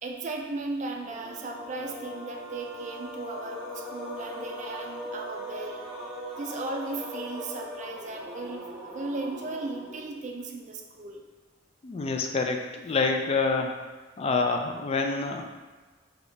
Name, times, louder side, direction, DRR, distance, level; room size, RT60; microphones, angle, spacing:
voice 1, 0.0-5.9 6.4-11.2, right 2 dB, 40° right, 2 dB, 0.4 m, -36 dB
sound 1, 1.0-10.4, equal, 5° right, 0.9 m, -40 dB
voice 2, 11.8-13.7 14.2-15.4, left 4 dB, 30° left, 3 dB, 0.3 m, -27 dB
3.6 x 2.3 x 3.8 m, 1.3 s
head